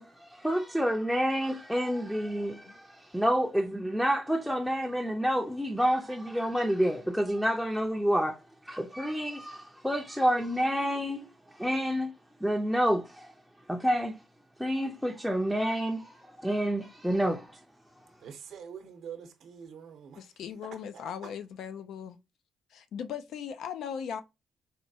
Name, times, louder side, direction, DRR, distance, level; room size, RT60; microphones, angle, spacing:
voice 1, 0.0-8.4 8.6-12.1 12.4-13.3 13.7-14.2 14.6-17.6, equal, ahead, 0.5 m, -29 dB
voice 2, 18.2-20.2 20.6-21.0, right 7 dB, 70° right, 0.8 m, -45 dB
voice 3, 20.2-22.2 22.7-24.2, left 8 dB, 75° left, 0.4 m, -38 dB
4.1 x 2.2 x 2.7 m
cardioid pair, 90°, 0 cm